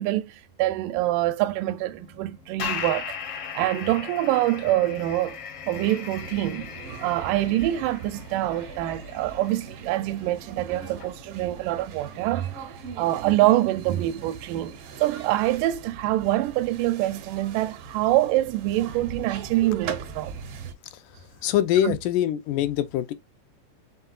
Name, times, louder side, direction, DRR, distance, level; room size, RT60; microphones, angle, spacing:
voice 1, 0.0-3.2 3.6-5.4 5.6-12.5 13.0-20.4 21.8-22.0, right 15 dB, 85° right, 2.1 m, -25 dB
sound 1, 1.6-14.6, left 7 dB, 70° left, 1.4 m, -39 dB
sound 2, 6.2-20.7, right 6 dB, 70° right, 1.4 m, -40 dB
voice 2, 21.4-23.1, left 12 dB, 85° left, 2.2 m, -23 dB
5.6 x 3.6 x 2.4 m
omnidirectional pair, 3.7 m